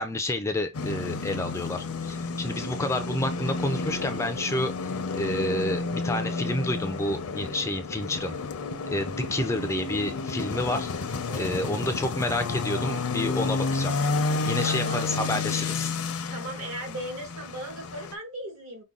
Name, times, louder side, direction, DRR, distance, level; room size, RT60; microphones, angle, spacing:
voice 1, 0.0-8.3 8.9-10.9 11.4-13.9 14.5-16.0, left 1 dB, 15° left, 0.3 m, -29 dB
sound 1, 0.7-18.1, left 3 dB, 80° left, 0.6 m, -31 dB
voice 2, 11.3-12.0 14.6-15.2 16.3-18.8, right 1 dB, 65° right, 1.5 m, -38 dB
5.3 x 2.2 x 3.6 m
head